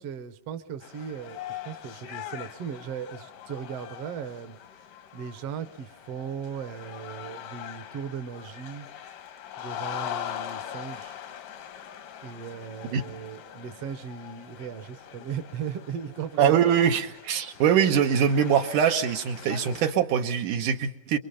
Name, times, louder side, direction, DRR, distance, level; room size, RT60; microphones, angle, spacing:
voice 1, 0.0-4.6 5.1-8.9 9.6-11.2 12.2-16.5, right 7 dB, 55° right, 9 dB, 1.9 m, -37 dB
sound 1, 0.8-19.9, left 10 dB, 75° left, 3.0 m, -42 dB
voice 2, 16.4-21.2, right 8 dB, 75° right, 4 dB, 2.7 m, -23 dB
26.5 x 23.5 x 5.7 m, 0.70 s
omnidirectional pair, 3.7 m